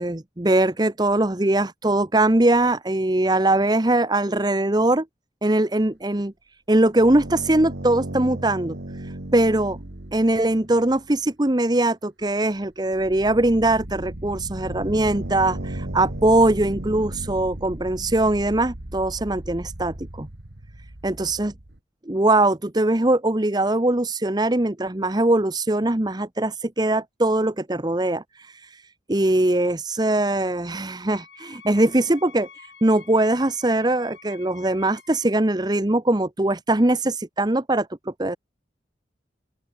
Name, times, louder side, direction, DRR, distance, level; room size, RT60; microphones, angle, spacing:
voice 1, 0.0-5.0 5.4-6.3 6.7-9.8 10.1-20.3 21.0-21.5 22.1-38.4, right 1 dB, 25° right, 1.0 m, -21 dB
sound 1, 6.7-11.2 12.2-12.3 12.7-21.8, right 1 dB, 70° right, 1.9 m, -35 dB
Wind instrument woodwind instrument, 31.1-35.4, left 6 dB, 75° left, 4.2 m, -48 dB
open air
head